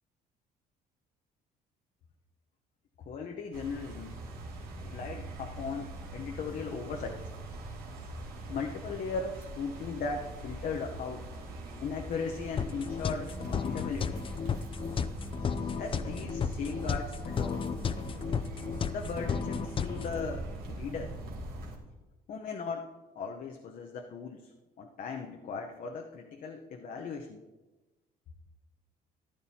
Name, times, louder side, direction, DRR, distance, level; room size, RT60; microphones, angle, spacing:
voice 1, 3.0-4.1 4.7-7.3 8.5-11.3 11.7-14.2 15.8-17.7 18.9-21.2 22.3-22.9 23.1-24.5 24.8-27.4, left 5 dB, 55° left, 2 dB, 0.9 m, -38 dB
sound 1, 3.5-21.8, right 2 dB, 65° right, 2.4 m, -42 dB
sound 2, 12.6-20.2, left 6 dB, 30° left, 0.5 m, -33 dB
14.5 x 11.0 x 2.9 m, 1.2 s
cardioid pair, 110°, 17 cm